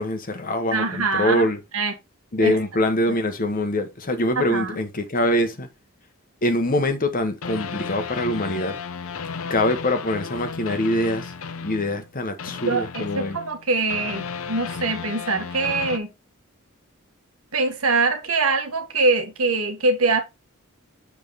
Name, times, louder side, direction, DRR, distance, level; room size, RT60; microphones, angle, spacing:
voice 1, 0.0-1.6 2.3-5.7 6.4-8.8 9.5-11.3 11.6-13.4, left 1 dB, 40° left, 1.1 m, -24 dB
voice 2, 0.7-1.5 1.7-1.9 2.4-2.6 3.1-3.2 4.4-4.8 12.7-16.1 17.5-20.2, right 3 dB, 80° right, 1.7 m, -23 dB
sound 1, 7.4-12.1 12.4-16.0, left 5 dB, 75° left, 0.7 m, -34 dB
7.2 x 4.6 x 4.0 m
head